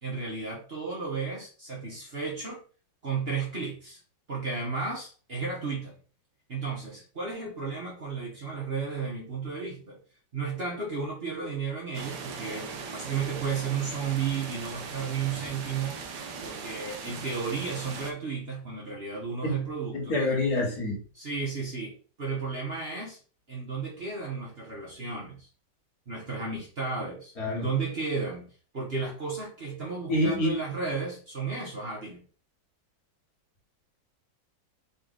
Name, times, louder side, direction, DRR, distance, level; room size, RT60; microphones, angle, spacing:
voice 1, 0.0-2.6 3.0-4.0 4.3-6.0 6.5-10.0 10.3-16.0 16.4-20.2 21.1-23.2 23.5-25.5 26.1-28.5 28.7-32.2, right 5 dB, 40° right, -3 dB, 1.2 m, -33 dB
sound 1, 11.9-18.1, right 5 dB, 70° right, 1.3 m, -39 dB
voice 2, 19.9-21.0 27.4-27.6 30.1-30.5, left 1 dB, 55° left, -2 dB, 1.8 m, -26 dB
4.1 x 3.2 x 3.9 m, 0.40 s
omnidirectional pair, 2.0 m